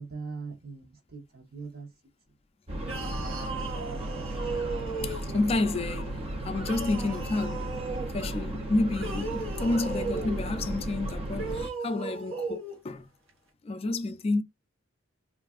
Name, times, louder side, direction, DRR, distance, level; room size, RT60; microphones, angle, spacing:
voice 1, 0.0-1.9 3.0-3.2, right 4 dB, 50° right, 1.0 m, -41 dB
sound 1, 2.7-11.7, right 1 dB, 30° right, 0.5 m, -35 dB
sound 2, 2.8-5.5 6.6-8.1 8.9-10.4 11.3-12.8, right 3 dB, 85° right, 1.0 m, -36 dB
voice 2, 5.0-7.8 8.1-13.1 13.6-14.4, left 2 dB, 30° left, 0.3 m, -30 dB
3.4 x 2.4 x 2.3 m
head